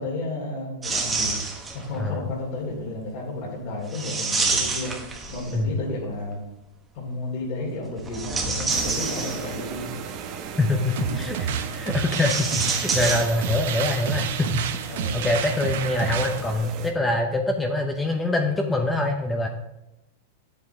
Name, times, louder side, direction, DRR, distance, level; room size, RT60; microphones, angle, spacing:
voice 1, 0.0-1.4 1.7-6.4 6.9-9.8 14.9-15.2, left 2 dB, 55° left, -6 dB, 3.2 m, -32 dB
sound 1, 0.8-2.0 3.9-5.8 8.0-9.7 12.0-13.8 14.0-14.1 15.1-15.3, right 4 dB, 15° right, 1.3 m, -28 dB
sound 2, 8.7-16.9, right 7 dB, 40° right, 1.0 m, -37 dB
voice 2, 10.6-19.5, left 2 dB, 10° left, 3 dB, 0.7 m, -25 dB
sound 3, 10.9-16.4, right 7 dB, 70° right, 0.9 m, -29 dB
9.2 x 7.9 x 3.5 m, 0.94 s
supercardioid pair, 140°, 0 cm